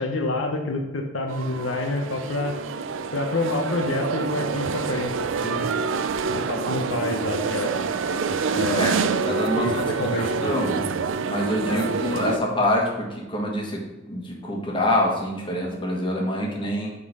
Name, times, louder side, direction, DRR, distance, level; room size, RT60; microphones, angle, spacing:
voice 1, 0.0-2.5 3.1-5.1 5.4-5.7 6.3-7.8 8.5-10.7 11.7-11.9, left 2 dB, 75° left, 3 dB, 0.9 m, -28 dB
sound 1, 1.3-12.4, right 5 dB, 70° right, 0.4 m, -27 dB
voice 2, 9.3-9.8 10.1-10.8 11.3-16.9, left 1 dB, 25° left, -1 dB, 1.4 m, -26 dB
7.9 x 3.8 x 5.4 m, 1.1 s
head